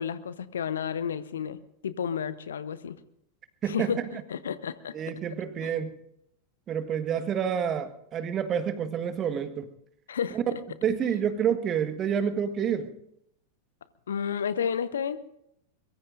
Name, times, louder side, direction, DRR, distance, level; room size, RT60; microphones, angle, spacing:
voice 1, 0.0-3.0 3.7-4.9 5.6-5.7 10.1-10.4 14.1-15.3, left 7 dB, 65° left, 15 dB, 0.9 m, -31 dB
voice 2, 3.6-3.9 4.9-5.9 6.7-9.7 10.3-10.4 10.8-12.9, right 8 dB, 30° right, 10 dB, 1.5 m, -28 dB
23.0 x 22.5 x 2.6 m, 0.76 s
figure-of-eight pair, 90°, 0 cm